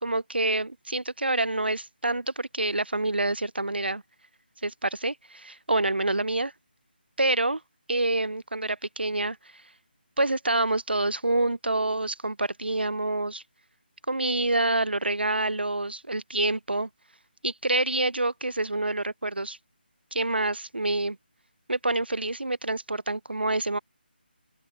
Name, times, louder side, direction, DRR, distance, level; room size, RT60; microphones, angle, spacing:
voice 1, 0.0-4.0 4.6-6.5 7.2-7.6 7.9-9.4 10.2-13.4 14.1-16.9 17.4-19.6 20.1-21.2 21.7-23.8, right 2 dB, 75° right, 0.8 m, -27 dB
open air
figure-of-eight pair, 155°, 6 cm